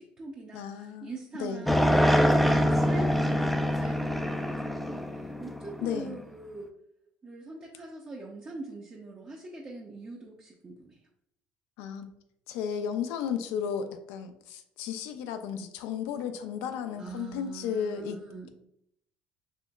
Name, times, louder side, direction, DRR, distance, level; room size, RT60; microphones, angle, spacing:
voice 1, 0.0-6.7 7.2-11.0 16.9-18.5, right 2 dB, 35° right, -2 dB, 0.6 m, -43 dB
voice 2, 0.5-1.1 1.4-1.6 5.8-6.2 11.8-12.1 12.5-18.2, left 7 dB, 80° left, 8 dB, 0.4 m, -34 dB
sound 1, 1.7-6.0, equal, ahead, 0.3 m, -25 dB
4.2 x 2.9 x 2.3 m, 0.77 s
supercardioid pair, 75°, 4 cm